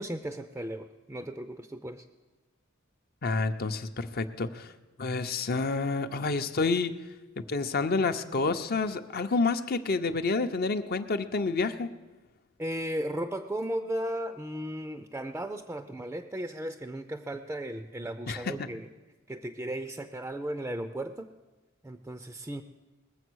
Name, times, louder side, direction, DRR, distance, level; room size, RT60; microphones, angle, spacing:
voice 1, 0.0-2.0 12.6-18.9 19.3-21.3 21.8-22.6, right 1 dB, 10° right, 8 dB, 0.4 m, -35 dB
voice 2, 3.2-4.7 5.0-6.9 7.4-11.9 18.3-18.5, left 3 dB, 50° left, 9 dB, 0.7 m, -29 dB
20.5 x 7.5 x 6.2 m, 1.1 s
head